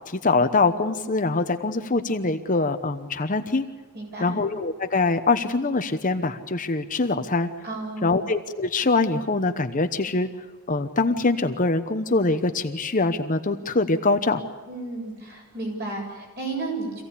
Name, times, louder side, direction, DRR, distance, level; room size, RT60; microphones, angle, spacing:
voice 1, 0.1-3.7 4.2-7.5 8.0-10.3 10.7-14.4, left 3 dB, 35° left, 8 dB, 1.0 m, -23 dB
voice 2, 3.9-4.4 7.6-8.2 14.7-17.0, right 2 dB, 50° right, 0 dB, 7.6 m, -33 dB
26.0 x 16.5 x 8.5 m, 1.3 s
head